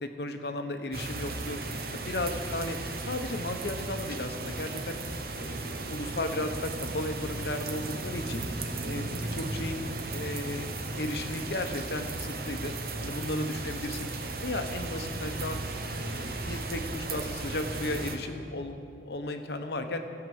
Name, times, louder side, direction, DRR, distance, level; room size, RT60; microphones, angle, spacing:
voice 1, 0.0-1.6 1.9-2.8 3.1-5.0 5.3-8.4 8.8-9.8 10.1-10.7 11.0-12.7 13.0-14.1 14.4-15.6 16.0-20.0, left 2 dB, 60° left, 6 dB, 0.9 m, -35 dB
sound 1, 0.9-18.2, right 2 dB, 55° right, 0.9 m, -36 dB
16.0 x 5.9 x 7.8 m, 2.4 s
head